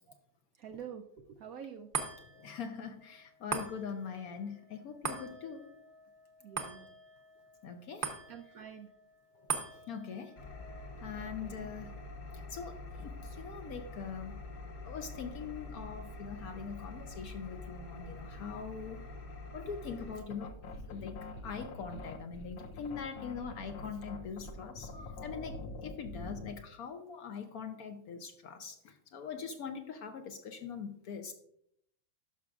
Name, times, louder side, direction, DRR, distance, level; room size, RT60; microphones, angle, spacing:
voice 1, 0.6-1.9 6.4-6.9 8.3-8.9 11.1-11.7, right 8 dB, 75° right, 5 dB, 0.8 m, -47 dB
sound 1, 1.9-14.5 15.0-15.1, right 5 dB, 40° right, 0.7 m, -44 dB
voice 2, 2.3-5.7 7.6-8.1 9.9-10.4 11.0-11.9 12.3-14.3 14.8-19.1 19.5-20.6 20.9-31.3, left 6 dB, 70° left, 7 dB, 0.9 m, -42 dB
Engine, 10.4-20.2, left 2 dB, 45° left, 1.4 m, -46 dB
sound 2, 20.0-26.6, left 2 dB, 85° left, 1.6 m, -45 dB
12.0 x 5.9 x 2.4 m, 0.73 s
omnidirectional pair, 2.0 m